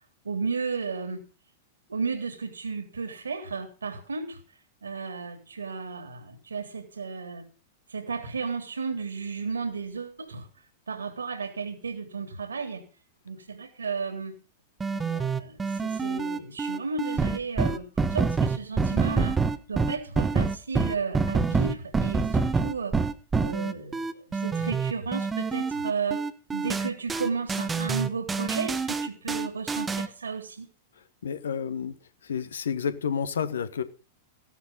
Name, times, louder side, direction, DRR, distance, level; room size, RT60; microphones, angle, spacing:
voice 1, 0.2-1.2 1.9-4.4 4.8-7.4 7.9-10.5 10.9-12.8 13.2-14.3 14.9-19.4 19.7-22.9 23.3-26.2 26.5-30.7, right 5 dB, 70° right, 3.3 m, -33 dB
sound 1, 14.8-30.1, right 4 dB, 15° right, 1.2 m, -26 dB
voice 2, 31.2-31.9 32.3-33.8, left 7 dB, 65° left, 1.5 m, -30 dB
16.0 x 11.5 x 5.6 m
figure-of-eight pair, 95°, 0 cm